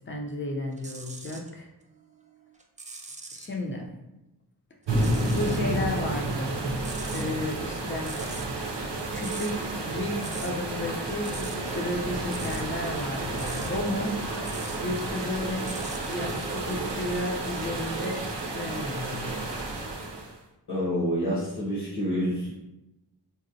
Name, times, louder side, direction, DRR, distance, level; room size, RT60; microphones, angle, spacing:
voice 1, 0.1-1.7 3.3-3.9 5.3-6.5 7.1-8.2 8.8-14.2 14.8-15.7 16.1-18.2 18.5-19.3, left 1 dB, 30° left, 1 dB, 0.5 m, -33 dB
sound 1, 0.7-1.5 2.0-3.5 4.9-5.7 6.0-14.9 15.2-16.4 17.2-17.4, right 3 dB, 20° right, 0.3 m, -43 dB
sound 2, 4.9-20.4, right 2 dB, 85° right, 0.6 m, -31 dB
sound 3, 10.6-16.9, right 1 dB, 40° right, 0.8 m, -42 dB
voice 2, 20.7-22.5, equal, 65° left, -7 dB, 1.0 m, -28 dB
4.0 x 2.1 x 2.6 m, 0.94 s
wide cardioid pair, 55°, 42 cm